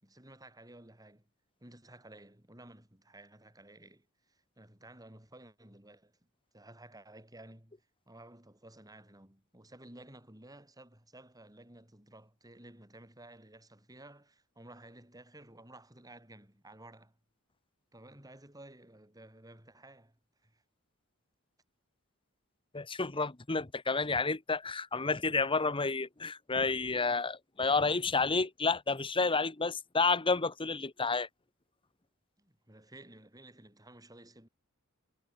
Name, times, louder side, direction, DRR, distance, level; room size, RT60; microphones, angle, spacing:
voice 1, 0.0-1.3 1.6-6.1 6.5-7.8 8.1-17.1 17.9-20.2 20.4-20.6 32.4-34.5, right 1 dB, 15° right, 6.4 m, -54 dB
voice 2, 22.7-31.3, left 4 dB, 25° left, 1.2 m, -30 dB
head